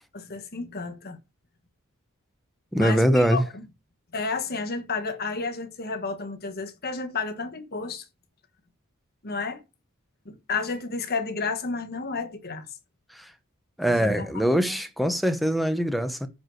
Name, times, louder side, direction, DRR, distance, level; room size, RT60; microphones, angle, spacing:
voice 1, 0.1-1.2 2.8-3.6 4.1-8.0 9.2-9.6 10.2-12.7 13.8-14.1 14.7-14.8, left 4 dB, 45° left, 1.4 m, -31 dB
voice 2, 2.7-3.4 13.2-13.3 13.8-16.3, equal, ahead, 0.9 m, -23 dB
10.0 x 4.8 x 6.3 m
head